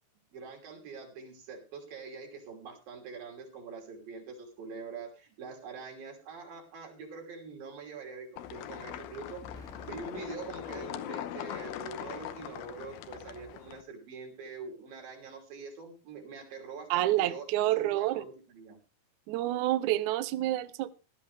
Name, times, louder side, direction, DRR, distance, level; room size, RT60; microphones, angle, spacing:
voice 1, 0.3-18.8, right 4 dB, 65° right, 4.8 m, -44 dB
sound 1, 8.4-13.8, left 12 dB, 80° left, 2.6 m, -41 dB
Explosion, 9.4-11.5, equal, ahead, 1.3 m, -55 dB
voice 2, 16.9-18.2 19.3-20.9, right 15 dB, 85° right, 1.7 m, -28 dB
16.0 x 12.5 x 3.4 m
omnidirectional pair, 4.4 m